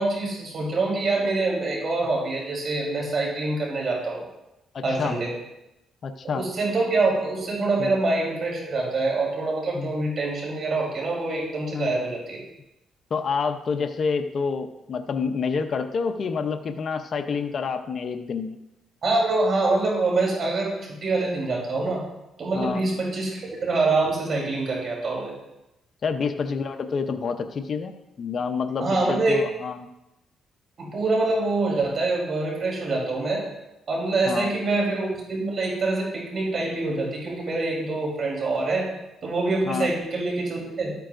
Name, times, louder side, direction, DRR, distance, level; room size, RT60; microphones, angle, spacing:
voice 1, 0.0-4.2 4.8-5.3 6.2-12.4 19.0-22.0 22.4-25.3 28.8-29.4 30.8-33.4 33.9-38.9 39.2-41.0, right 3 dB, 50° right, -2 dB, 3.7 m, -25 dB
voice 2, 4.7-5.2 6.0-6.4 7.8-7.9 9.7-9.9 11.7-12.0 13.1-18.6 22.5-22.8 26.0-29.9 34.3-34.5 39.6-39.9, left 5 dB, 50° left, 7 dB, 0.7 m, -28 dB
13.0 x 9.3 x 2.6 m, 0.91 s
cardioid pair, 90°, 0 cm